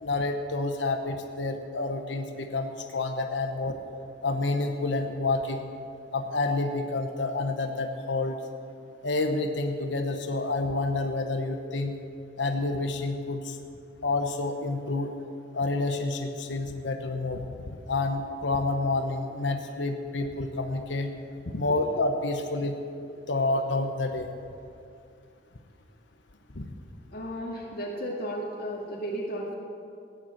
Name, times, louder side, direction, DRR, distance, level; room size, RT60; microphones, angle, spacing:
voice 1, 0.0-3.8 4.2-5.6 6.1-8.4 9.0-11.9 12.4-13.6 14.0-15.1 15.5-21.1 21.5-22.7 23.3-24.3 26.6-26.7, left 2 dB, 80° left, 5 dB, 1.1 m, -29 dB
voice 2, 27.1-29.5, equal, 60° left, -4 dB, 2.0 m, -34 dB
16.0 x 9.4 x 7.8 m, 2.5 s
head